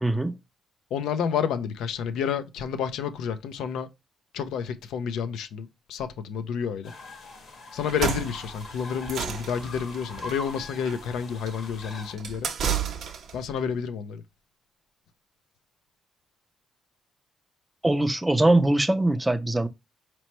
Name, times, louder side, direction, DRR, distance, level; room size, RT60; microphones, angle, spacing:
voice 1, 0.0-0.4 17.8-19.7, right 2 dB, 10° right, 0.4 m, -22 dB
voice 2, 0.9-3.9 4.3-6.9 7.7-12.5 13.3-14.2, left 7 dB, 85° left, 0.5 m, -30 dB
sound 1, 6.8-12.1, left 2 dB, 65° left, 1.5 m, -42 dB
sound 2, 7.8-13.5, right 8 dB, 65° right, 0.7 m, -32 dB
4.2 x 3.0 x 3.0 m
cardioid pair, 90°, 0 cm